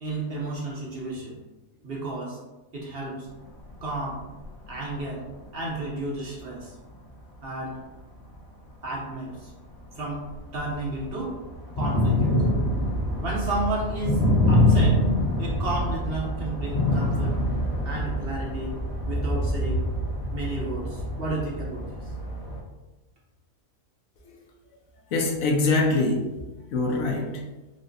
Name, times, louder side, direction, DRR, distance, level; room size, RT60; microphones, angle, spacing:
voice 1, 0.0-1.4 1.8-2.4 2.7-3.3 3.8-4.2 4.7-5.2 5.5-6.7 7.4-7.8 8.8-9.5 9.9-10.2 10.5-11.3 11.8-12.4 13.2-14.2 14.5-15.0 15.4-17.4 17.8-18.7 19.1-19.8 20.3-22.0, right 2 dB, 55° right, -3 dB, 0.8 m, -32 dB
sound 1, 3.7-3.8 4.4-4.5 5.5-5.6 6.2-6.3 8.2-8.3 8.8-8.9 9.9-10.0 10.3-22.6, left 1 dB, 55° left, 1.7 m, -25 dB
voice 2, 25.1-26.4 26.7-27.4, left 3 dB, 75° left, 1 dB, 1.0 m, -24 dB
4.8 x 2.0 x 2.6 m, 1.1 s
omnidirectional pair, 1.4 m